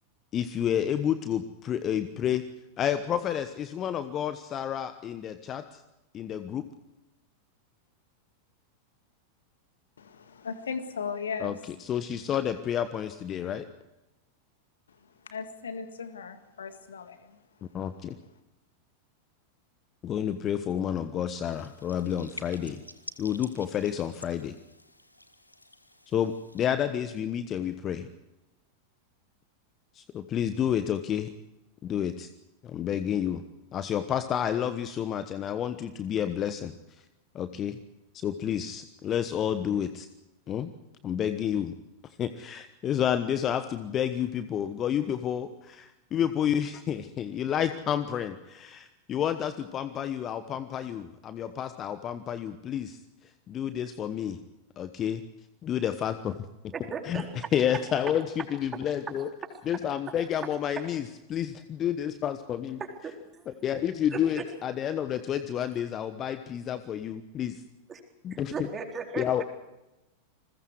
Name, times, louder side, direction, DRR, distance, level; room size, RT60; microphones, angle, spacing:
voice 1, 0.3-2.4 2.8-5.8 6.1-6.6 11.4-13.6 17.7-18.1 20.0-22.8 23.2-24.5 26.1-28.1 29.9-31.3 31.8-32.3 32.6-33.4 33.7-36.7 37.3-37.8 38.1-40.1 40.5-40.7 41.0-41.7 42.0-53.0 53.5-54.4 54.8-55.2 55.6-56.4 56.6-56.7 57.0-57.2 57.5-59.3 59.7-62.8 63.5-67.6 68.2-68.5 69.2-69.4, left 9 dB, 30° left, 1.1 m, -30 dB
voice 2, 10.0-11.5 15.3-17.4, left 5 dB, 70° left, 2.0 m, -37 dB
sound 1, 21.4-26.7, left 1 dB, 85° left, 1.5 m, -48 dB
voice 3, 56.7-57.3 57.7-57.8 62.8-63.5 64.1-64.4 67.9-68.0 68.3-69.2, right 5 dB, 20° right, 4.0 m, -37 dB
29.0 x 21.0 x 4.8 m
figure-of-eight pair, 90°, 0 cm